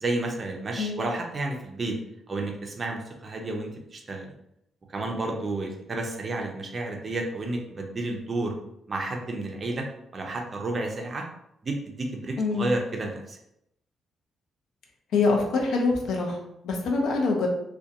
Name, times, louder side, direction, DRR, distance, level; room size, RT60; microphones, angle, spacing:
voice 1, 0.0-2.0 2.3-4.3 4.9-8.5 8.9-9.9 10.1-11.2 11.6-13.4, right 2 dB, 30° right, 1 dB, 0.4 m, -31 dB
voice 2, 12.4-12.7 15.1-16.4 16.6-17.5, left 3 dB, 80° left, 1 dB, 0.5 m, -24 dB
2.4 x 2.1 x 2.7 m, 0.79 s
cardioid pair, 160°, 0 cm